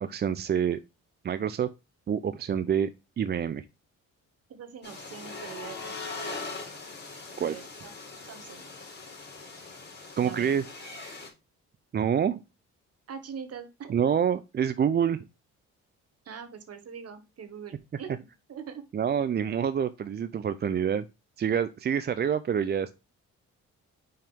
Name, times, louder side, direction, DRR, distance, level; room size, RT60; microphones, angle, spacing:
voice 1, 0.0-0.8 1.2-1.7 2.1-2.9 3.2-3.6 7.4-7.6 10.2-10.6 11.9-12.4 13.9-15.2 18.9-21.1 21.4-22.9, right 8 dB, 35° right, 0.4 m, -27 dB
voice 2, 4.5-6.0 6.3-6.4 7.4-8.0 8.3-8.7 10.2-10.5 13.1-14.0 16.2-18.2 18.5-18.8, right 7 dB, 55° right, 1.6 m, -42 dB
sound 1, 4.8-11.3, left 3 dB, 35° left, 3.6 m, -41 dB
5.5 x 5.2 x 3.5 m
cardioid pair, 90°, 30 cm